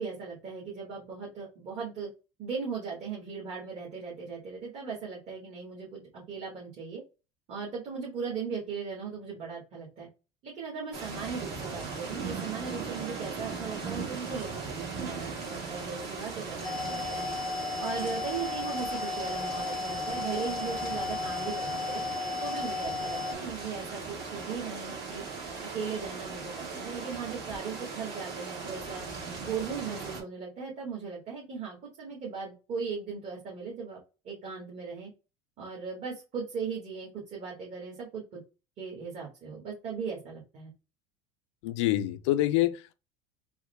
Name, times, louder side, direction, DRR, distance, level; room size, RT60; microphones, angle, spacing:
voice 1, 0.0-2.1 2.4-7.0 7.5-10.1 10.4-17.3 17.8-22.0 22.4-25.2 25.7-29.0 29.4-34.0 34.2-35.1 35.6-38.4 38.8-40.7, right 5 dB, 50° right, 1.7 m, -38 dB
sound 1, 10.9-30.2, right 4 dB, 65° right, 2.0 m, -38 dB
sound 2, 16.6-23.3, left 4 dB, 5° left, 0.3 m, -34 dB
voice 2, 41.6-42.9, left 15 dB, 85° left, 0.4 m, -26 dB
3.5 x 2.2 x 3.3 m
supercardioid pair, 105°, 15 cm